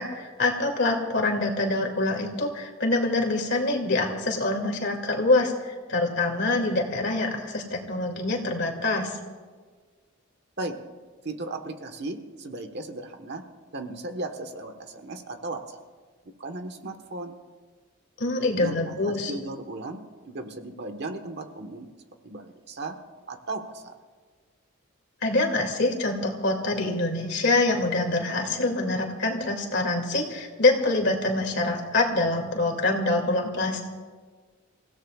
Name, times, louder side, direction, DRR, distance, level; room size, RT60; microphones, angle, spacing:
voice 1, 0.0-9.2 18.2-19.3 25.2-33.8, left 2 dB, 55° left, 2 dB, 2.5 m, -25 dB
voice 2, 11.2-13.4 13.7-15.8 16.4-17.4 18.6-21.9 22.2-23.0 23.3-23.9, right 2 dB, 55° right, 5 dB, 1.4 m, -36 dB
29.0 x 16.5 x 2.4 m, 1.5 s
head